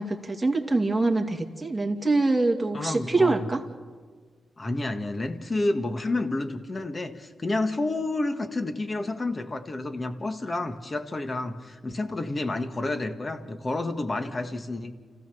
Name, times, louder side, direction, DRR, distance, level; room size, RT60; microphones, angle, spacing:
voice 1, 0.0-3.6, right 2 dB, 15° right, 2 dB, 2.3 m, -24 dB
voice 2, 2.7-3.5 4.6-14.9, left 2 dB, 35° left, 8 dB, 1.7 m, -30 dB
29.5 x 15.0 x 7.1 m, 1.5 s
cardioid pair, 75°, 0 cm